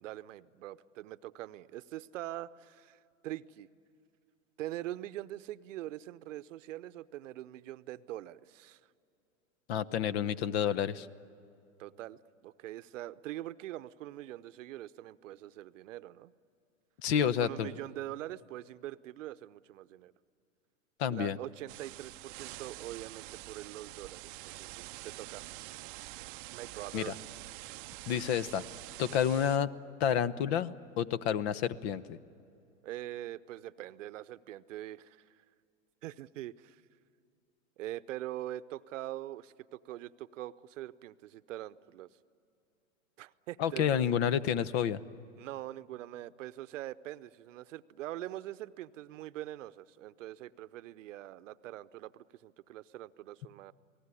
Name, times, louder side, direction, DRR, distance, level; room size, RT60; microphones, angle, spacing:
voice 1, 0.0-3.7 4.6-8.8 11.8-16.3 17.2-20.1 21.1-25.4 26.5-27.1 32.8-35.3 36.0-36.8 37.8-42.1 43.2-44.2 45.4-53.7, right 14 dB, 65° right, 15 dB, 0.8 m, -43 dB
voice 2, 9.7-11.1 17.0-17.7 21.0-21.4 26.9-27.1 28.1-28.6 29.0-29.7 30.0-32.2 43.6-45.0, left 9 dB, 50° left, 17 dB, 0.9 m, -29 dB
sound 1, 21.7-29.6, right 20 dB, 40° right, 0.6 m, -46 dB
28.5 x 19.0 x 9.8 m, 2.6 s
hypercardioid pair, 130°, 40 cm